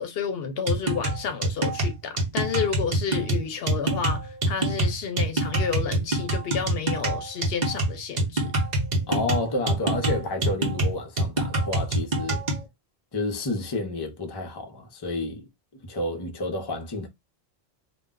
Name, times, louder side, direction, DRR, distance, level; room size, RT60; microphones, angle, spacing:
voice 1, 0.0-4.2 4.5-8.5, left 7 dB, 75° left, 0.8 m, -30 dB
sound 1, 0.7-12.6, right 1 dB, 45° right, 0.8 m, -26 dB
voice 2, 9.1-12.4 13.1-15.5 15.8-17.1, left 2 dB, 30° left, 0.6 m, -30 dB
2.2 x 2.1 x 3.6 m
omnidirectional pair, 1.1 m